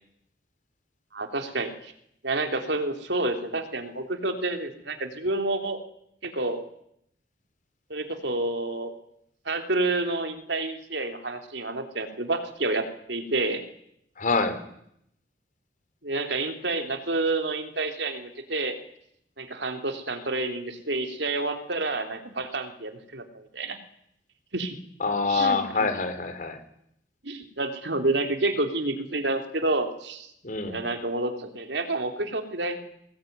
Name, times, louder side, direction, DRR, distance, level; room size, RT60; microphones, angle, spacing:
voice 1, 1.1-1.9 2.2-5.8 6.2-6.6 7.9-8.9 9.4-13.6 16.0-18.8 19.4-23.8 24.5-24.7 25.3-25.6 27.2-30.3 30.6-32.8, right 2 dB, 70° right, 6 dB, 3.4 m, -29 dB
voice 2, 14.2-14.6 25.0-26.6 30.4-30.8, left 4 dB, 45° left, 10 dB, 3.7 m, -26 dB
22.5 x 19.0 x 9.6 m, 0.73 s
head